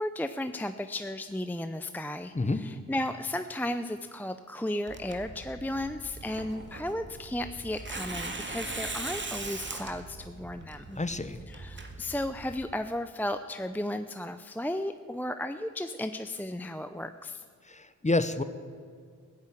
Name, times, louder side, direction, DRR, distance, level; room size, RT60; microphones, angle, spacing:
voice 1, 0.0-11.0 11.5-17.4, left 1 dB, 5° left, 9 dB, 0.5 m, -34 dB
voice 2, 2.3-2.7 11.0-11.4 17.7-18.4, left 2 dB, 25° left, 12 dB, 0.9 m, -28 dB
Tearing, 4.9-12.6, right 2 dB, 35° right, 1.9 m, -40 dB
16.0 x 9.4 x 9.1 m, 2.1 s
wide cardioid pair, 90°, 31 cm